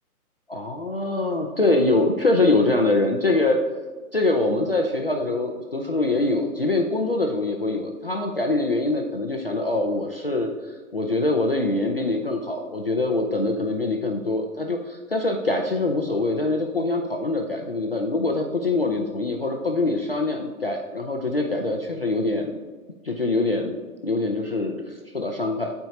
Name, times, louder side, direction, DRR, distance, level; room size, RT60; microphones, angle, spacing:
voice 1, 0.5-3.6 4.1-22.5 23.0-23.7 24.0-25.7, left 2 dB, 40° left, 2 dB, 0.4 m, -24 dB
12.5 x 4.6 x 2.7 m, 1.5 s
hypercardioid pair, 175°, 45 cm